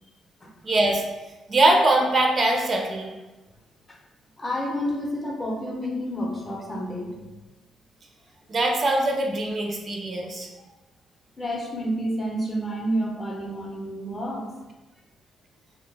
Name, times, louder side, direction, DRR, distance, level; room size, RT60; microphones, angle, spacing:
voice 1, 0.6-1.0 1.5-3.1 8.5-10.5, right 2 dB, 40° right, 1 dB, 0.4 m, -22 dB
voice 2, 4.4-7.2 11.4-14.5, equal, 25° left, -1 dB, 0.6 m, -29 dB
2.2 x 2.2 x 3.1 m, 1.1 s
cardioid pair, 90°, 0 cm